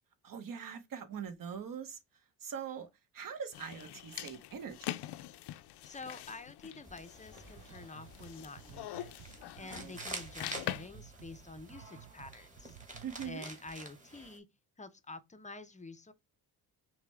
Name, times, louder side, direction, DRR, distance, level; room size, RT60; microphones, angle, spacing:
voice 1, 0.2-2.0 2.4-2.9 3.1-4.9 9.6-9.9 13.0-13.5, right 7 dB, 55° right, 1.0 m, -42 dB
sound 1, 3.5-10.9, left 14 dB, 80° left, 0.5 m, -44 dB
voice 2, 5.8-9.1 9.6-12.8 13.2-14.5 14.8-16.1, left 3 dB, 20° left, 0.5 m, -48 dB
sound 2, 6.8-14.4, right 2 dB, 20° right, 1.5 m, -49 dB
sound 3, 7.4-13.4, right 11 dB, 75° right, 0.6 m, -55 dB
5.7 x 2.2 x 3.3 m
cardioid pair, 95°, 40 cm